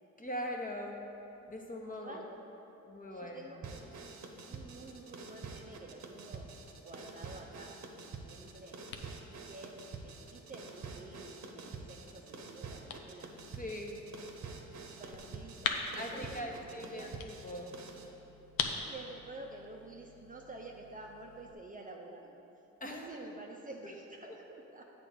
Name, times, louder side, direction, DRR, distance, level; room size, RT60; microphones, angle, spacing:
voice 1, 0.2-1.1 1.5-2.2 2.9-3.6 13.6-14.0 15.9-17.7 22.8-23.1 24.3-24.4, equal, 25° left, 1 dB, 1.1 m, -41 dB
voice 2, 1.9-2.3 3.1-4.0 4.5-6.5 6.8-8.8 9.4-13.3 14.9-17.1 17.5-17.6 18.8-22.4 22.9-24.8, right 2 dB, 25° right, 0 dB, 0.7 m, -50 dB
sound 1, 3.6-18.1, right 4 dB, 50° right, 1.0 m, -47 dB
sound 2, 8.0-21.5, left 6 dB, 75° left, 0.7 m, -44 dB
8.3 x 3.4 x 6.4 m, 2.9 s
hypercardioid pair, 55°, 36 cm